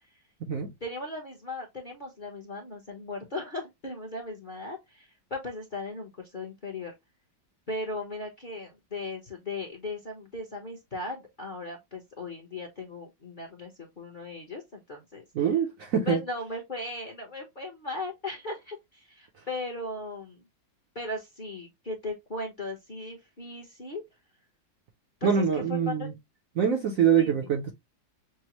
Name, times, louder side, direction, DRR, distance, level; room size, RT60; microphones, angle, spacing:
voice 1, 0.8-6.9 7.7-15.5 16.1-20.4 20.9-24.0 25.2-26.1 27.2-27.5, left 2 dB, 35° left, 0.8 m, -37 dB
voice 2, 15.3-16.2 25.2-26.1 26.6-27.7, right 7 dB, 60° right, 0.9 m, -24 dB
6.1 x 2.1 x 2.9 m
omnidirectional pair, 2.0 m